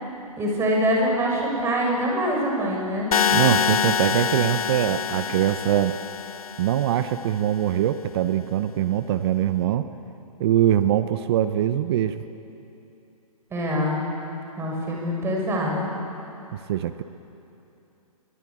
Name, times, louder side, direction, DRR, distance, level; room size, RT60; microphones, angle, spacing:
voice 1, 0.4-3.1 13.5-14.0 14.6-15.9, equal, 15° right, -1 dB, 6.9 m, -24 dB
sound 1, 3.1-7.1, left 7 dB, 70° left, 1.1 m, -25 dB
voice 2, 3.3-6.0 6.6-9.9 10.4-12.2 16.7-17.0, right 11 dB, 40° right, 11 dB, 1.0 m, -22 dB
28.5 x 23.0 x 8.9 m, 2.8 s
hypercardioid pair, 135°, 19 cm